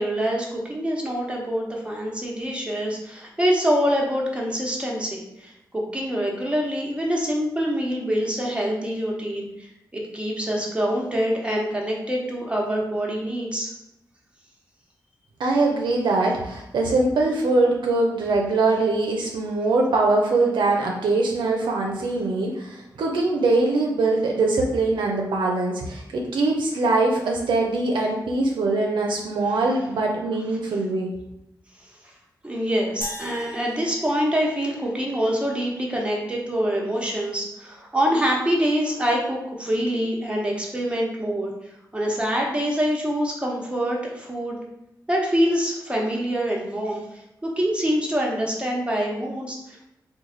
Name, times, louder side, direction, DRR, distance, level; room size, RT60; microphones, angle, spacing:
voice 1, 0.0-13.7 32.0-32.1 32.4-44.6 45.1-49.8, equal, 15° right, -2 dB, 0.9 m, -25 dB
voice 2, 15.4-31.1, right 2 dB, 85° right, 0 dB, 0.5 m, -22 dB
sound 1, 33.0-35.4, left 1 dB, 40° left, 0.8 m, -40 dB
3.1 x 2.2 x 3.8 m, 0.85 s
cardioid pair, 60°, 8 cm